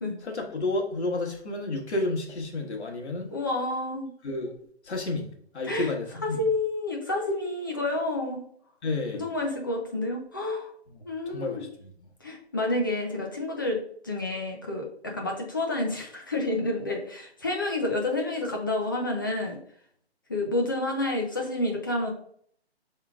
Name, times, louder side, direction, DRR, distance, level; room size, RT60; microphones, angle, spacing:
voice 1, 0.2-3.3 4.2-4.6 4.8-5.3 5.5-6.5 8.8-9.3 10.9-11.9, left 2 dB, 80° left, 0 dB, 1.5 m, -31 dB
voice 2, 3.3-4.1 5.6-5.9 6.2-8.4 9.1-10.7 11.1-11.6 12.2-19.6 20.3-22.1, left 2 dB, 20° left, 0 dB, 0.4 m, -29 dB
6.0 x 3.6 x 2.3 m, 0.64 s
hypercardioid pair, 160°, 33 cm